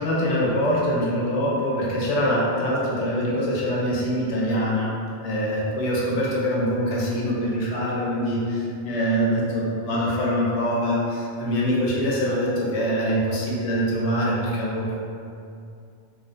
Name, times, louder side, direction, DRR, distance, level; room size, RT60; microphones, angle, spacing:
voice 1, 0.0-4.9 5.2-15.0, equal, 75° left, -5 dB, 0.9 m, -24 dB
2.6 x 2.1 x 2.5 m, 2.5 s
omnidirectional pair, 1.3 m